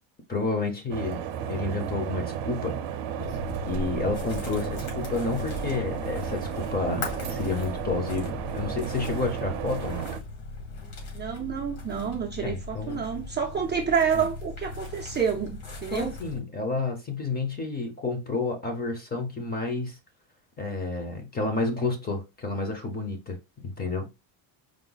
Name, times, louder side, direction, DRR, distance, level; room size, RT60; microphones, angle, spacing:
voice 1, 0.3-1.2 1.5-2.8 3.7-10.1 12.4-13.0 14.1-14.2 15.9-20.0 20.6-24.1, left 3 dB, 20° left, 0.7 m, -30 dB
sound 1, 0.9-10.2, right 9 dB, 60° right, 0.7 m, -33 dB
sound 2, 3.2-16.4, left 3 dB, 75° left, 2.3 m, -38 dB
voice 2, 11.1-16.1, right 7 dB, 25° right, 0.5 m, -28 dB
4.8 x 2.1 x 3.9 m
cardioid pair, 170°, 46 cm